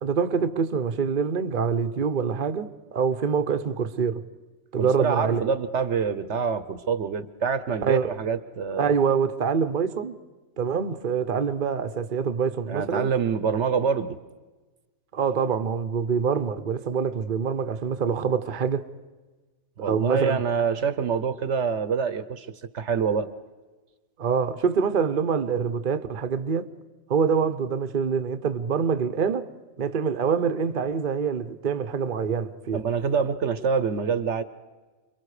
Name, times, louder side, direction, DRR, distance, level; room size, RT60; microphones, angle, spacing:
voice 1, 0.0-4.2 4.7-5.4 7.8-8.1 8.8-10.1 10.6-13.1 15.1-18.8 19.8-20.4 24.2-26.7 27.1-29.5 29.8-32.8, right 6 dB, 40° right, 1.0 m, -25 dB
voice 2, 4.8-8.9 12.7-14.2 19.8-22.5 22.7-23.3 32.7-34.4, right 6 dB, 60° right, 1.2 m, -26 dB
30.0 x 23.5 x 4.9 m
omnidirectional pair, 1.4 m